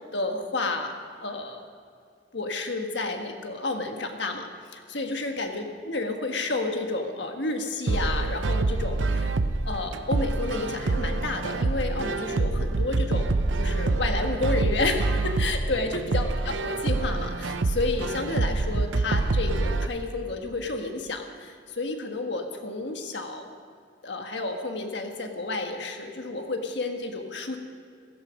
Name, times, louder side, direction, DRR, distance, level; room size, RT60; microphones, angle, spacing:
voice 1, 0.1-0.9 1.2-1.7 2.3-9.3 9.6-23.5 24.0-27.6, left 2 dB, 65° left, 4 dB, 1.5 m, -31 dB
sound 1, 7.9-19.9, right 2 dB, 80° right, 0.7 m, -26 dB
16.5 x 15.0 x 5.3 m, 2.3 s
head